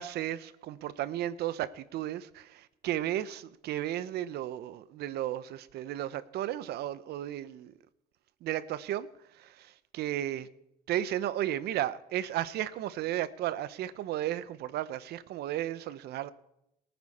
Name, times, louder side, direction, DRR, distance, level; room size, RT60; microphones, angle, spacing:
voice 1, 0.0-7.7 8.4-9.1 9.4-10.5 10.9-16.3, right 12 dB, 75° right, 0.7 m, -34 dB
23.0 x 9.6 x 4.2 m
cardioid pair, 110°, 17 cm